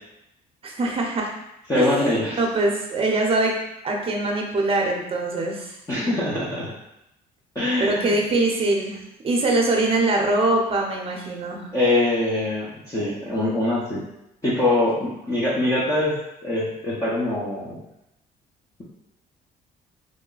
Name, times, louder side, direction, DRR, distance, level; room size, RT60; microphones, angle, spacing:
voice 1, 0.6-1.3 1.7-3.5 3.8-5.7 7.8-11.7, right 2 dB, 35° right, 0 dB, 0.8 m, -23 dB
voice 2, 1.7-2.4 5.9-6.7 7.5-8.1 11.7-14.0 14.4-16.1 16.4-17.8, left 2 dB, 20° left, -8 dB, 0.8 m, -23 dB
3.2 x 2.1 x 3.9 m, 0.86 s
cardioid pair, 110°, 17 cm